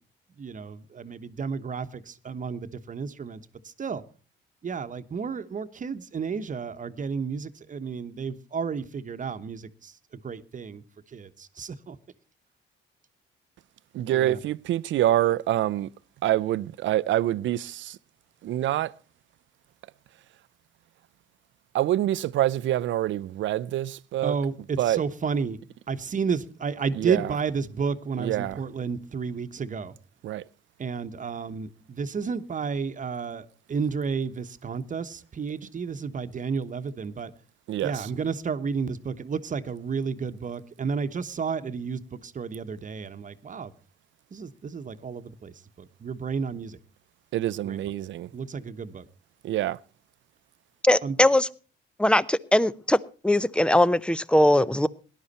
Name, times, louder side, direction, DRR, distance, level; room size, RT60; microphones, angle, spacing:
voice 1, 0.3-4.0 4.6-10.0 10.2-12.0 14.1-14.4 24.2-25.6 25.9-29.9 30.8-37.3 37.8-43.7 44.3-46.8 47.6-47.8 48.3-49.0 51.0-51.2, right 5 dB, 40° right, 1.2 m, -32 dB
voice 2, 13.9-15.9 16.2-18.0 18.4-18.9 21.7-24.3 24.8-25.0 26.9-27.3 28.2-28.6 30.2-30.4 37.7-38.1 47.3-48.3 49.4-49.8, right 13 dB, 70° right, 0.6 m, -26 dB
voice 3, 50.8-51.5 52.0-53.0 53.2-54.9, left 1 dB, 5° left, 0.7 m, -20 dB
18.0 x 11.5 x 4.2 m
cardioid pair, 90°, 20 cm